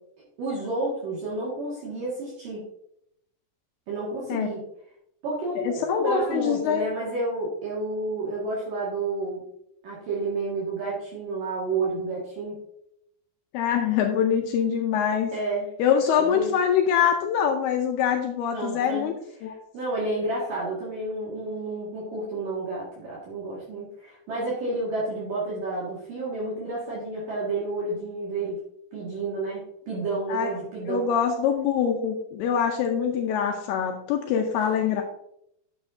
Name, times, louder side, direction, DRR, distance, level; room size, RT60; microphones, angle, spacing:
voice 1, 0.4-2.7 3.9-4.6 5.2-9.5 9.8-12.6 15.3-15.7 16.2-16.5 18.5-19.1 19.5-28.6 28.9-31.1, right 2 dB, 55° right, -6 dB, 3.4 m, -30 dB
voice 2, 5.6-6.8 13.5-15.3 15.8-19.1 19.4-19.5 30.3-30.5 30.9-35.0, left 8 dB, 80° left, 3 dB, 2.5 m, -24 dB
12.0 x 6.8 x 2.7 m, 0.75 s
omnidirectional pair, 5.0 m